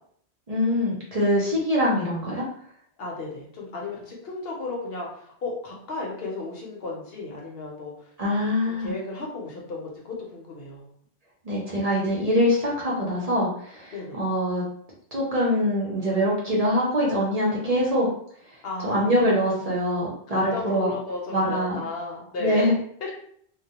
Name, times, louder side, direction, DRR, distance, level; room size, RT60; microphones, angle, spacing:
voice 1, 0.5-2.5 8.2-8.9 11.4-14.6 15.1-18.1 18.8-20.9 21.3-21.8 22.4-22.7, equal, 45° right, -5 dB, 0.6 m, -24 dB
voice 2, 3.0-8.1 8.7-10.9 13.9-14.2 18.6-19.1 20.3-22.7, left 3 dB, 70° left, -2 dB, 0.9 m, -34 dB
2.2 x 2.2 x 2.8 m, 0.64 s
omnidirectional pair, 1.1 m